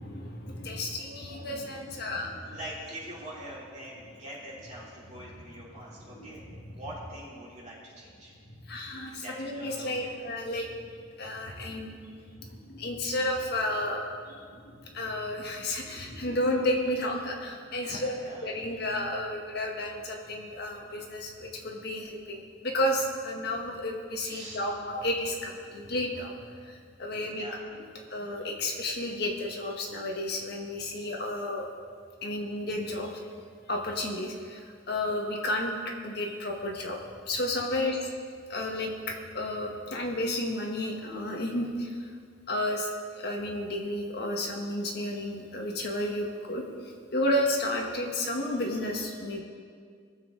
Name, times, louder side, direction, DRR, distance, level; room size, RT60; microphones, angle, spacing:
voice 1, 0.0-2.6 6.1-6.6 8.5-10.7 11.2-12.0 12.4-18.1 18.4-26.4 26.6-27.5 28.1-31.6 32.2-33.2 33.7-37.0 37.3-38.0 38.5-42.1 42.5-49.4, left 1 dB, 50° left, 0 dB, 1.6 m, -32 dB
voice 2, 2.5-6.4 6.7-8.3 9.1-10.1 17.8-18.7 24.2-24.6 27.3-27.6 37.6-37.9, right 1 dB, 35° right, -7 dB, 3.6 m, -44 dB
19.5 x 7.4 x 4.0 m, 2.1 s
head